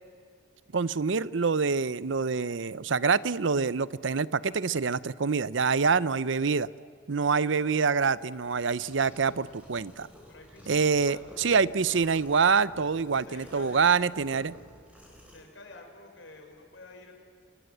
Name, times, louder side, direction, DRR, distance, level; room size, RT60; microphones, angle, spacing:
voice 1, 0.7-6.7 7.1-10.1 10.7-14.6, right 5 dB, 75° right, 18 dB, 0.6 m, -26 dB
voice 2, 5.8-6.5 7.2-7.7 10.3-11.4 13.2-14.1 15.3-17.1, left 2 dB, 75° left, 3 dB, 5.6 m, -50 dB
sound 1, 8.0-15.4, equal, 5° right, 5.1 m, -52 dB
28.5 x 23.5 x 8.0 m, 2.2 s
head